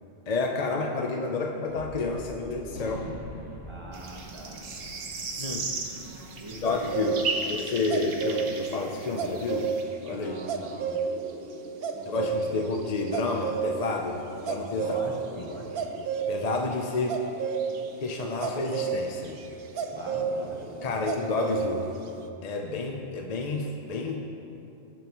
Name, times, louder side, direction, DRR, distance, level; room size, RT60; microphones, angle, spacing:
voice 1, 0.3-3.1 5.4-5.7 6.6-9.7 10.0-10.5 12.0-14.9 15.4-15.5 16.3-17.3 18.0-19.4 20.8-22.0 22.4-24.2, left 3 dB, 40° left, 1 dB, 0.6 m, -30 dB
Gunshot gunfire, 1.7-8.2, left 1 dB, 70° left, 2.0 m, -45 dB
voice 2, 3.7-4.7 6.4-7.6 10.1-11.0 11.9-12.6 14.8-15.7 19.9-20.9, right 1 dB, 25° right, -1 dB, 1.1 m, -41 dB
sound 1, 3.9-9.8, right 3 dB, 80° right, 1.4 m, -36 dB
sound 2, 6.7-16.3 17.1-21.6 21.9-22.1, right 6 dB, 55° right, 0.8 m, -32 dB
19.0 x 7.2 x 3.0 m, 2.8 s
omnidirectional pair, 1.3 m